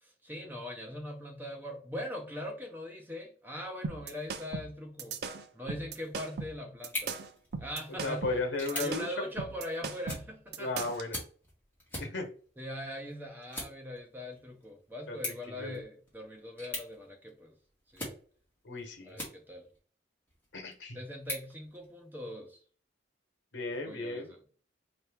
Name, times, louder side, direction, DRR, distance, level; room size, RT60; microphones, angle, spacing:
voice 1, 0.0-5.2 5.5-7.2 7.6-8.3 8.7-10.9 12.6-17.6 17.9-18.2 19.1-19.7 20.9-22.6 23.9-24.4, left 1 dB, 10° right, 0.8 m, -41 dB
sound 1, 3.8-11.1, right 5 dB, 60° right, 0.5 m, -39 dB
sound 2, 6.8-19.8 20.3-22.3, left 1 dB, 10° left, 1.7 m, -45 dB
voice 2, 8.0-9.3 10.6-11.2 12.0-12.3 15.1-15.8 18.6-19.2 20.5-21.0 23.5-24.3, left 2 dB, 80° left, 1.1 m, -35 dB
4.7 x 2.9 x 3.5 m
head